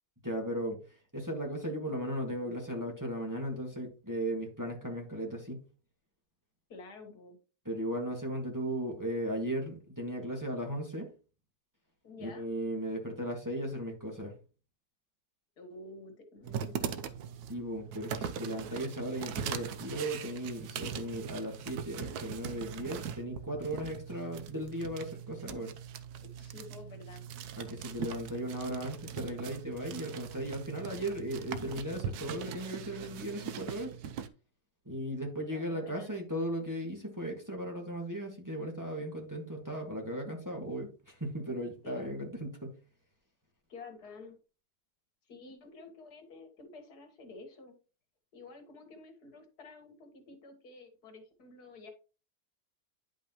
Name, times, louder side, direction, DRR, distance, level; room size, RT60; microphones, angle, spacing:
voice 1, 0.2-0.8 1.1-5.6 7.7-11.1 12.2-14.3 17.5-25.7 27.6-33.9 34.9-42.7, right 1 dB, 10° right, 0 dB, 1.7 m, -36 dB
voice 2, 6.7-7.4 12.0-12.5 15.6-17.1 26.2-27.2 35.5-36.2 41.8-42.2 43.7-44.4 45.3-47.8 48.3-51.9, left 3 dB, 75° left, 5 dB, 2.1 m, -50 dB
sound 1, 16.4-34.3, right 8 dB, 75° right, 1.2 m, -41 dB
10.0 x 5.6 x 3.0 m, 0.34 s
omnidirectional pair, 1.7 m